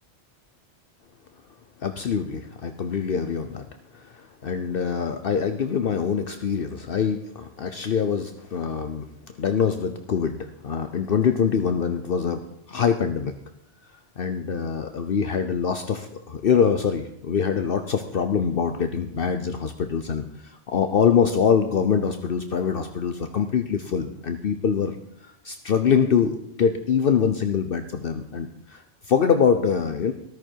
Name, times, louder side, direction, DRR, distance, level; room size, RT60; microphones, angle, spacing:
voice 1, 1.8-3.6 3.9-4.1 4.4-9.0 9.4-12.4 12.7-13.3 14.2-24.9 25.4-30.1, left 7 dB, 60° left, 8 dB, 1.0 m, -24 dB
14.0 x 13.0 x 4.6 m, 0.72 s
omnidirectional pair, 1.1 m